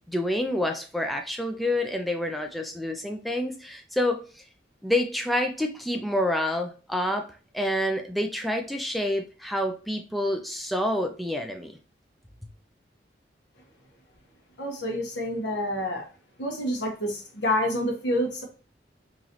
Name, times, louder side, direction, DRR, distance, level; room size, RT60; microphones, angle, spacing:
voice 1, 0.1-4.4 4.8-7.3 7.5-11.8, left 1 dB, ahead, 3 dB, 0.3 m, -28 dB
voice 2, 14.6-16.0 16.4-18.4, left 1 dB, 75° left, 1 dB, 1.2 m, -28 dB
3.9 x 3.0 x 2.8 m, 0.36 s
head